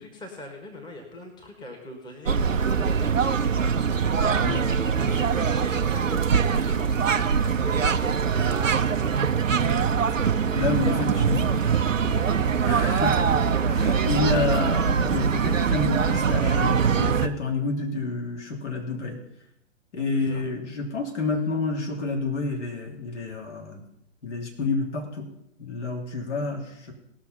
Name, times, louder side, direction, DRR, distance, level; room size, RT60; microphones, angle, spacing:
voice 1, 0.0-3.6 4.4-8.9 10.8-11.2 11.9-12.4 20.3-20.4, left 1 dB, 10° left, 2 dB, 1.5 m, -42 dB
sound 1, 2.3-17.3, right 6 dB, 90° right, 0.7 m, -23 dB
voice 2, 10.5-11.4 12.7-19.2 19.9-23.8 24.2-25.3 25.6-26.9, left 3 dB, 65° left, 1 dB, 3.4 m, -29 dB
18.5 x 6.2 x 5.6 m, 0.80 s
figure-of-eight pair, 120°, 38 cm